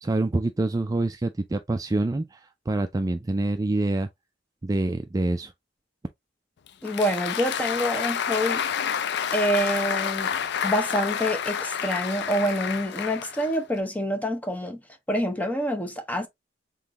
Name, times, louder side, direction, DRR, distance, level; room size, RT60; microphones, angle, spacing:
voice 1, 0.0-4.1 4.6-5.5, right 2 dB, 20° right, 0.3 m, -26 dB
Applause, 6.7-13.8, left 8 dB, 60° left, 0.4 m, -29 dB
voice 2, 6.8-8.6 9.3-14.8 15.1-16.3, equal, 10° left, 0.8 m, -27 dB
3.9 x 3.8 x 2.9 m
head